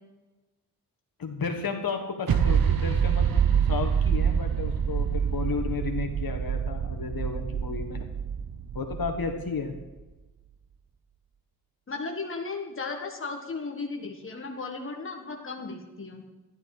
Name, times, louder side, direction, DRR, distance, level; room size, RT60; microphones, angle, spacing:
voice 1, 1.2-8.1 8.7-9.7, left 5 dB, 65° left, 4 dB, 1.7 m, -33 dB
sound 1, 2.3-9.8, right 7 dB, 65° right, 0.9 m, -26 dB
voice 2, 11.9-16.2, left 4 dB, 35° left, 1 dB, 1.6 m, -35 dB
12.5 x 11.5 x 4.9 m, 1.1 s
wide cardioid pair, 130°, 38 cm